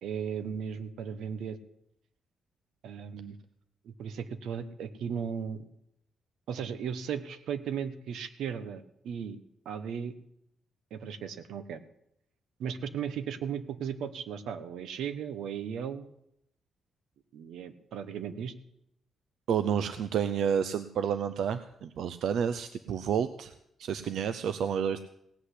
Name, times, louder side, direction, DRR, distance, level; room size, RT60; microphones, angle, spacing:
voice 1, 0.0-1.6 2.8-3.4 3.8-5.6 6.5-9.4 9.6-10.1 10.9-11.8 12.6-16.1 17.3-18.5, right 7 dB, 85° right, 12 dB, 1.1 m, -36 dB
voice 2, 19.5-23.5 23.8-25.0, right 8 dB, 70° right, 12 dB, 0.6 m, -30 dB
17.0 x 8.1 x 8.3 m, 0.78 s
cardioid pair, 155°, 0 cm